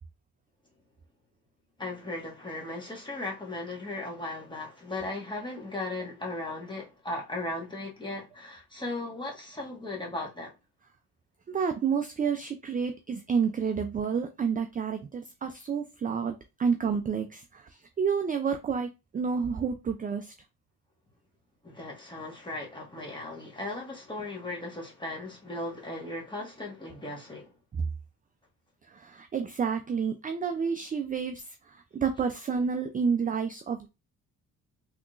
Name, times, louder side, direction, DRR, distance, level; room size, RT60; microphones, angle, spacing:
voice 1, 1.8-10.5 21.6-27.6, left 2 dB, 10° left, 1.4 m, -37 dB
voice 2, 11.5-20.3 27.7-27.8 28.9-33.9, right 6 dB, 25° right, 0.4 m, -30 dB
3.5 x 2.9 x 2.4 m
cardioid pair, 75°, 38 cm